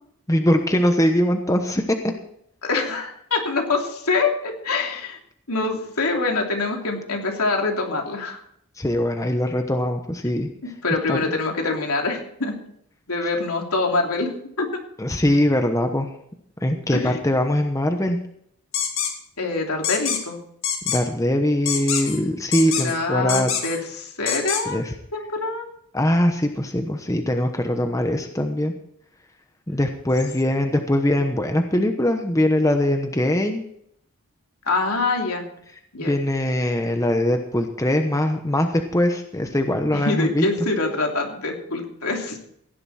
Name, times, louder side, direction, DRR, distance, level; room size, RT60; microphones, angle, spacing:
voice 1, 0.3-2.0 8.8-10.5 11.1-11.2 15.0-16.1 16.6-18.2 20.9-23.5 24.7-24.9 25.9-28.7 29.7-33.7 36.0-40.4, left 1 dB, 15° left, 5 dB, 1.0 m, -22 dB
voice 2, 2.6-5.2 5.5-8.4 10.6-12.5 13.1-14.7 16.9-17.2 19.4-20.4 22.7-24.8 25.1-25.7 34.6-35.5 35.9-36.1 39.9-42.4, left 3 dB, 80° left, 1 dB, 3.1 m, -25 dB
sound 1, 18.7-19.1 19.8-20.2 20.6-21.0 21.7-22.2 22.5-22.9 23.3-23.8 24.3-24.6, left 8 dB, 60° left, 2.4 m, -25 dB
16.0 x 11.0 x 4.3 m, 0.69 s
head